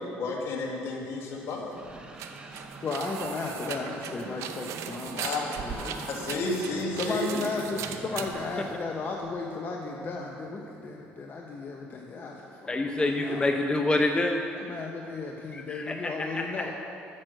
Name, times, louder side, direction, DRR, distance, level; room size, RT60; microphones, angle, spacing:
voice 1, 0.0-1.7 5.1-7.4, left 2 dB, 60° left, -1 dB, 1.7 m, -32 dB
sound 1, 1.4-9.3, right 8 dB, 70° right, 0.6 m, -39 dB
sound 2, 1.7-11.1, right 2 dB, 20° right, 0.9 m, -46 dB
voice 2, 2.8-5.3 5.6-5.9 7.0-13.5 14.5-16.7, left 3 dB, 40° left, 0 dB, 0.9 m, -35 dB
voice 3, 12.7-14.4 15.5-16.7, left 2 dB, 20° left, 4 dB, 0.6 m, -27 dB
8.7 x 6.3 x 6.5 m, 2.7 s
supercardioid pair, 75°, 5 cm